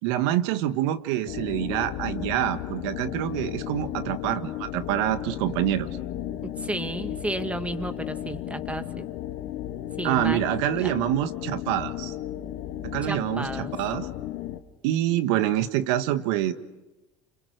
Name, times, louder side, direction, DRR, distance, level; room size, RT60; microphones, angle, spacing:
voice 1, 0.0-5.9 10.0-12.1 12.8-14.1 14.8-16.5, right 12 dB, 70° right, 10 dB, 1.6 m, -26 dB
sound 1, 1.3-14.6, left 12 dB, 65° left, 1.7 m, -34 dB
voice 2, 6.4-9.1 10.0-10.4 10.8-10.9 13.0-13.7, right 2 dB, 10° right, 9 dB, 2.0 m, -32 dB
30.0 x 27.5 x 6.6 m, 1.1 s
hypercardioid pair, 85°, 16 cm